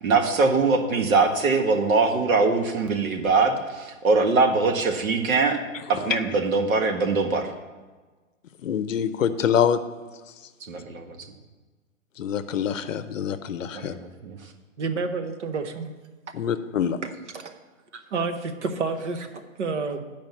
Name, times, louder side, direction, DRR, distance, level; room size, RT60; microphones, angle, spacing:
voice 1, 0.0-5.6 5.9-7.5 10.7-11.2 13.7-14.4, right 4 dB, 85° right, 4 dB, 1.6 m, -22 dB
voice 2, 8.6-9.8 12.2-13.9 16.3-17.0, left 8 dB, 70° left, 11 dB, 0.6 m, -25 dB
voice 3, 14.8-15.9 17.0-17.6 17.9-20.0, right 4 dB, 60° right, 8 dB, 1.0 m, -30 dB
9.2 x 5.1 x 7.0 m, 1.3 s
hypercardioid pair, 175°, 40 cm